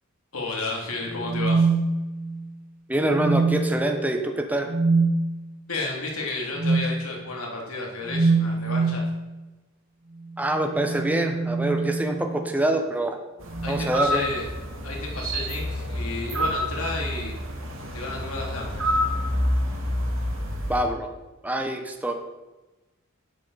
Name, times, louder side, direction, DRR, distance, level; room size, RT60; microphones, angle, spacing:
voice 1, 0.3-1.7 5.7-9.0 13.6-14.4 14.8-17.3 17.9-19.0, left 2 dB, 85° left, -1 dB, 2.7 m, -32 dB
sound 1, 1.2-2.5 3.1-3.9 4.7-5.2 6.6-6.9 8.1-9.1 10.6-12.5 13.5-14.0 15.2-15.5, right 3 dB, 45° right, 0.9 m, -24 dB
voice 2, 2.9-4.7 10.4-13.2 13.7-14.3 20.7-21.1 21.4-22.1, right 1 dB, 10° right, 4 dB, 1.0 m, -25 dB
sound 2, 13.4-20.8, equal, 65° right, 2.2 m, -28 dB
11.5 x 9.9 x 4.1 m, 1.1 s
head